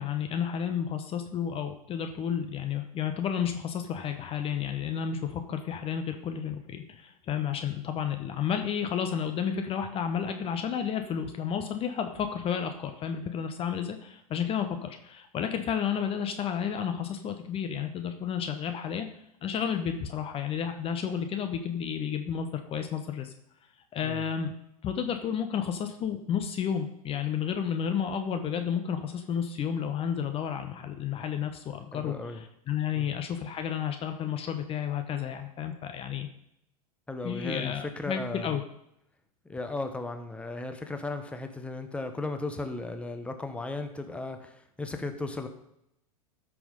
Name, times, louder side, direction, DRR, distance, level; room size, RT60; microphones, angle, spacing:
voice 1, 0.0-19.1 19.4-23.3 23.9-24.5 24.8-36.3 37.2-38.6, left 8 dB, 30° left, 7 dB, 1.1 m, -31 dB
voice 2, 31.9-32.4 32.9-33.1 37.1-38.6 39.5-45.5, left 2 dB, 5° left, 7 dB, 1.2 m, -36 dB
13.5 x 6.2 x 5.3 m, 0.78 s
figure-of-eight pair, 95°, 20 cm